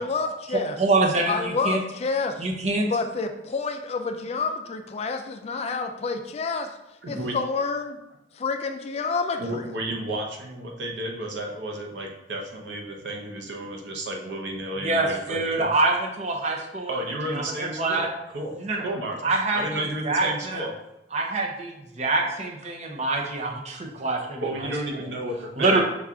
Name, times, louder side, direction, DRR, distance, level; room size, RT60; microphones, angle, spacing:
voice 1, 0.0-0.8 1.3-2.5 2.9-6.7 7.1-8.0 8.3-9.7, left 4 dB, 35° left, 7 dB, 0.3 m, -28 dB
voice 2, 0.8-1.8 2.4-2.9 14.8-17.0 17.3-18.1 18.6-18.8 19.2-20.7 21.1-25.0 25.6-25.8, right 2 dB, 40° right, 1 dB, 0.7 m, -25 dB
voice 3, 7.0-7.4 9.4-15.7 16.9-18.6 18.8-19.2 19.5-20.7 24.4-25.8, right 1 dB, 75° right, 1 dB, 0.8 m, -32 dB
5.7 x 2.4 x 3.6 m, 0.90 s
head